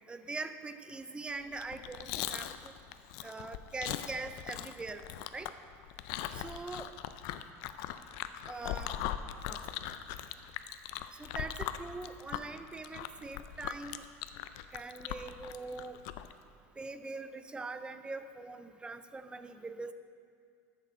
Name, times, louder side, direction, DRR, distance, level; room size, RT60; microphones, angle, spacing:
voice 1, 0.1-2.7 3.2-5.0 5.3-5.5 6.3-6.9 8.5-9.0 9.5-9.6 9.8-9.9 11.2-14.0 14.7-16.0 16.8-19.9, right 3 dB, 10° right, 10 dB, 0.5 m, -42 dB
Chewing mastication, 1.5-16.3, left 12 dB, 60° left, 0.4 m, -40 dB
13.0 x 6.4 x 3.8 m, 2.2 s
supercardioid pair, 120°, 8 cm